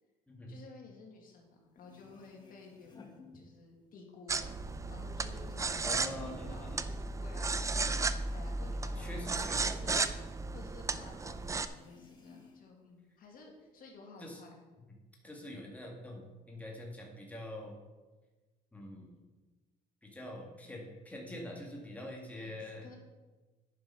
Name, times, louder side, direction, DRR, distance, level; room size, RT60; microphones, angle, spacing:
voice 1, 0.5-4.6 4.9-10.2 10.5-14.5 15.2-15.4 22.3-23.0, left 3 dB, 55° left, 1 dB, 1.9 m, -54 dB
sound 1, 1.5-1.6 1.7-4.0 4.3-7.2 7.5-10.5 10.8-10.9 11.3-12.8 13.2-14.0, left 4 dB, 25° left, 1.7 m, -59 dB
sound 2, 4.3-11.7, right 3 dB, 20° right, 0.4 m, -35 dB
voice 2, 5.8-6.8 9.0-10.1 14.2-14.4 15.2-17.8 18.7-19.2 20.0-22.9, left 1 dB, 10° left, -1 dB, 2.0 m, -45 dB
10.0 x 5.2 x 5.7 m, 1.2 s
cardioid pair, 110°, 17 cm